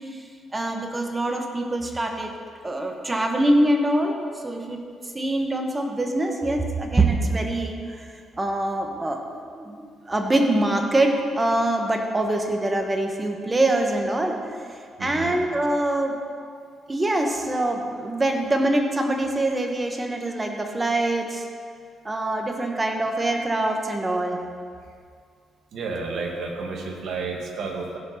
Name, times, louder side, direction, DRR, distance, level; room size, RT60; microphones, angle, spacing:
voice 1, 0.5-2.3 2.6-4.8 5.1-8.1 8.4-9.2 9.5-14.4 15.0-16.2 16.9-21.4 22.0-24.4, right 1 dB, 20° right, 3 dB, 1.4 m, -24 dB
voice 2, 15.0-15.4 25.7-28.0, right 4 dB, 70° right, 1 dB, 1.8 m, -31 dB
15.5 x 5.3 x 5.9 m, 2.2 s
cardioid pair, 90°, 0 cm